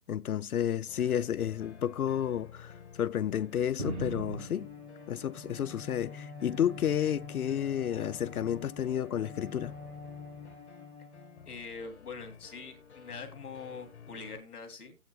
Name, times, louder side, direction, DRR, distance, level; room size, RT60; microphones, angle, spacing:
voice 1, 0.1-4.7 5.1-9.7, left 10 dB, 75° left, 0.6 m, -31 dB
sound 1, 0.9-14.4, left 6 dB, 50° left, 1.5 m, -52 dB
Bowed string instrument, 3.4-11.8, left 4 dB, 15° right, 1.2 m, -47 dB
sound 2, 3.8-6.0 6.4-7.3 8.2-8.6 9.6-9.7, right 2 dB, 50° right, 2.0 m, -42 dB
voice 2, 11.4-15.0, left 4 dB, 5° left, 1.2 m, -44 dB
18.0 x 7.9 x 2.2 m
hypercardioid pair, 175°, 44 cm